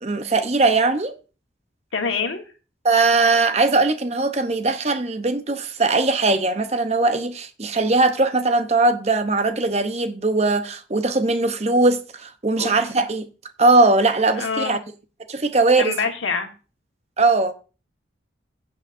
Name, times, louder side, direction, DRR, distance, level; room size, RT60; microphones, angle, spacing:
voice 1, 0.0-1.1 2.8-13.3 13.6-14.8 15.3-16.0 17.2-17.5, right 3 dB, 35° right, 0.8 m, -20 dB
voice 2, 1.9-2.4 12.5-12.8 14.3-14.8 15.8-16.5, left 5 dB, 85° left, 1.7 m, -25 dB
15.5 x 8.5 x 2.6 m
head